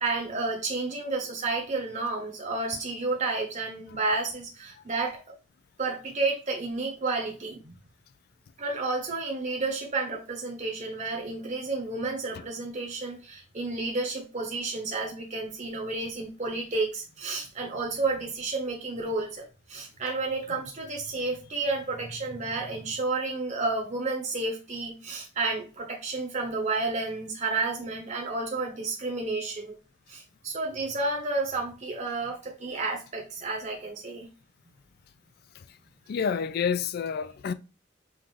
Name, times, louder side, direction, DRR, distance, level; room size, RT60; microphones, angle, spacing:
voice 1, 0.0-5.2 5.8-7.7 8.6-29.8 30.1-34.3, right 3 dB, 40° right, 0.8 m, -31 dB
voice 2, 36.1-37.5, left 6 dB, 55° left, 0.3 m, -30 dB
5.6 x 2.4 x 3.1 m
head